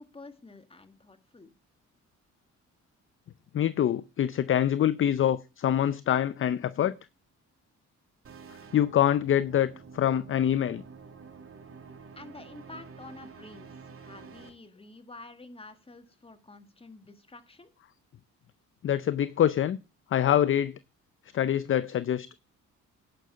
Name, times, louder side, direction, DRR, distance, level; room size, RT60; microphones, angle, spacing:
voice 1, 0.0-1.5 12.1-17.7, left 2 dB, 20° left, 1.8 m, -49 dB
voice 2, 3.5-7.0 8.7-10.8 18.8-19.8 20.1-20.8 21.3-22.3, left 10 dB, 45° left, 0.5 m, -25 dB
sound 1, 8.2-14.5, right 5 dB, 45° right, 2.4 m, -48 dB
10.5 x 6.5 x 5.6 m
cardioid pair, 90°, 30 cm